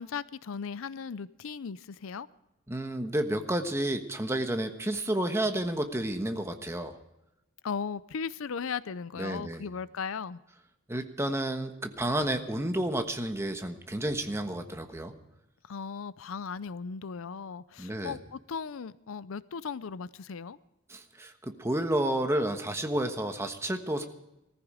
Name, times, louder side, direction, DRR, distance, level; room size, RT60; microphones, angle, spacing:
voice 1, 0.0-2.3 7.6-10.4 15.6-20.6, left 6 dB, 70° left, 17 dB, 0.5 m, -37 dB
voice 2, 2.7-7.0 9.2-9.6 10.9-15.1 17.8-18.2 20.9-24.1, right 1 dB, 15° right, 6 dB, 1.2 m, -31 dB
19.0 x 14.5 x 5.0 m, 0.91 s
head